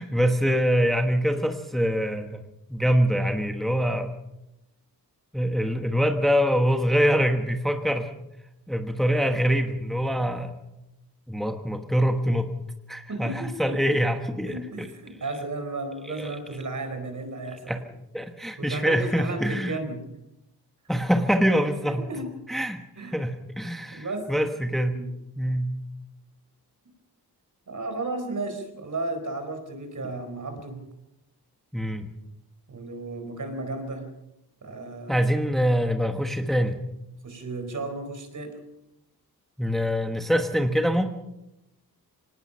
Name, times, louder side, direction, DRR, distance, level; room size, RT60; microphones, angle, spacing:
voice 1, 0.0-2.4 2.7-4.1 5.3-8.1 8.7-10.6 11.3-12.5 12.9-14.9 16.1-16.3 17.7-17.8 18.1-19.8 20.9-22.1 22.5-22.8 23.1-25.0 25.4-25.7 31.7-32.1 35.1-36.8 39.6-41.1, equal, ahead, 5 dB, 1.2 m, -24 dB
voice 2, 13.1-14.0 14.3-17.8 18.6-20.0 21.8-22.3 23.0-23.2 23.9-24.3 24.9-25.1 27.7-30.9 32.7-34.1 34.6-35.3 37.2-38.5, right 2 dB, 50° right, 6 dB, 4.5 m, -34 dB
25.5 x 18.5 x 5.7 m, 0.89 s
wide cardioid pair, 160°, 39 cm